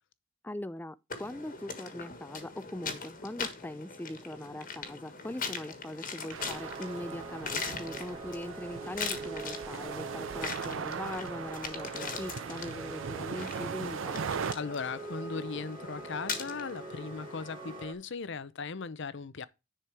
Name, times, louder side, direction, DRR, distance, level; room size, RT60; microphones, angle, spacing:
voice 1, 0.4-14.2, left 1 dB, 10° left, 0.4 m, -41 dB
sound 1, 1.1-17.8, left 5 dB, 40° left, 1.5 m, -41 dB
sound 2, 6.3-14.5, right 6 dB, 65° right, 0.5 m, -39 dB
sound 3, 6.4-17.9, right 4 dB, 25° right, 2.2 m, -45 dB
voice 2, 14.5-19.5, left 5 dB, 60° left, 0.7 m, -38 dB
10.0 x 4.6 x 4.8 m
head